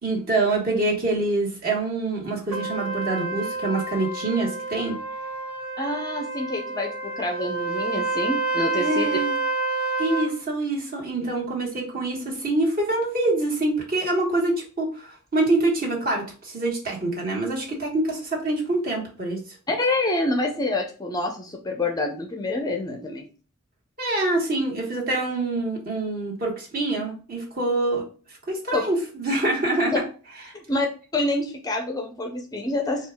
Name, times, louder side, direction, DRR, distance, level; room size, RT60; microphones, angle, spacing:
voice 1, 0.0-5.0 8.7-9.3 10.0-19.6 24.0-28.0 28.5-30.0, right 2 dB, 45° right, -2 dB, 1.3 m, -25 dB
Trumpet, 2.5-10.3, right 3 dB, 85° right, 1.1 m, -29 dB
voice 2, 5.8-9.2 19.7-23.3 28.7-28.9 30.5-30.9 31.1-33.1, left 2 dB, 20° left, 3 dB, 0.4 m, -27 dB
4.4 x 2.4 x 3.4 m, 0.38 s
head